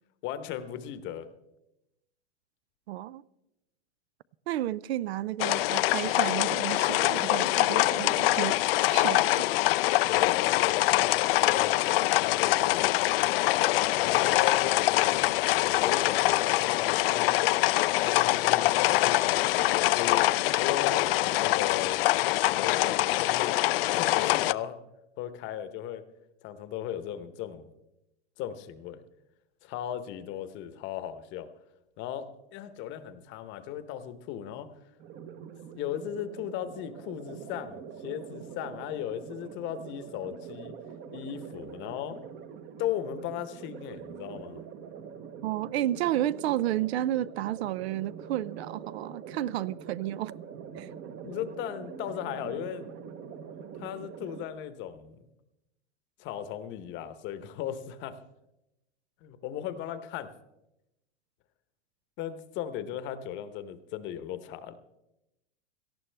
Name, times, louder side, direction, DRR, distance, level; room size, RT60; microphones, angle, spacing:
voice 1, 0.2-1.3 10.1-11.7 12.1-13.0 14.0-15.2 15.5-17.4 18.0-20.3 20.6-22.0 22.5-23.5 23.9-24.8 25.2-26.0 26.4-27.7 28.4-29.0 29.6-31.5 32.0-34.7 35.7-40.7 41.1-42.3 42.8-44.6 51.2-52.9 53.8-55.2 56.2-58.2 59.2-60.3 62.2-64.8, left 10 dB, 30° left, 0.9 m, -37 dB
voice 2, 2.9-3.2 4.5-8.6 8.9-9.3 45.4-50.3 50.8-50.9, right 13 dB, 65° right, 0.5 m, -31 dB
sound 1, 5.4-24.5, left 17 dB, 55° left, 0.4 m, -24 dB
sound 2, 35.0-54.5, right 7 dB, 30° right, 0.9 m, -44 dB
18.0 x 14.0 x 3.4 m
hypercardioid pair, 140°, 35 cm